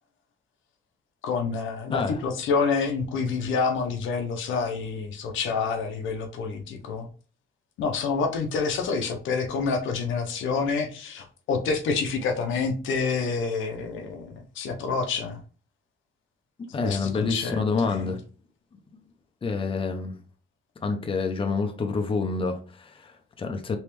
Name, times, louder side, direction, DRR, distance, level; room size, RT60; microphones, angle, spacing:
voice 1, 1.2-7.1 7.8-15.4 16.8-18.1, left 5 dB, 80° left, 0.8 m, -28 dB
voice 2, 16.7-18.2 19.4-20.1 20.8-23.8, left 4 dB, 25° left, 0.7 m, -28 dB
3.3 x 3.1 x 3.1 m
cardioid pair, 90°, 20 cm